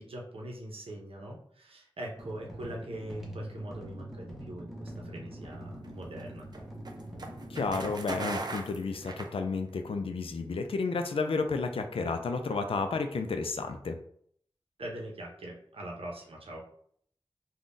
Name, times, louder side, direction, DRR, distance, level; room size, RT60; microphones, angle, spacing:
voice 1, 0.0-6.5 14.8-16.6, right 1 dB, 85° right, -1 dB, 0.7 m, -42 dB
sound 1, 2.2-9.0, right 1 dB, 5° right, 0.8 m, -44 dB
sound 2, 5.5-9.9, right 2 dB, 45° right, 0.5 m, -39 dB
voice 2, 7.5-14.0, left 4 dB, 75° left, 6 dB, 0.4 m, -31 dB
3.6 x 2.2 x 2.5 m, 0.64 s
wide cardioid pair, 50°, 9 cm